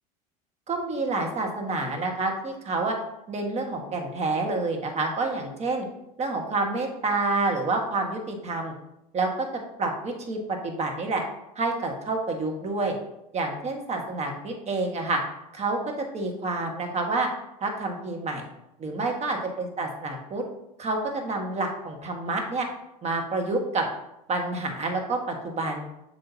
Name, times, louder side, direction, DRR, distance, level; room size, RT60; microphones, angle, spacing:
voice 1, 0.7-3.0 3.3-5.9 6.2-8.7 9.1-11.2 11.5-13.0 13.3-15.2 15.5-15.8 16.1-17.3 17.6-18.4 18.8-20.4 20.8-22.7 23.0-23.8 24.3-25.8, right 3 dB, 35° right, 2 dB, 1.6 m, -28 dB
7.8 x 5.5 x 2.8 m, 0.85 s
hypercardioid pair, 80°, 20 cm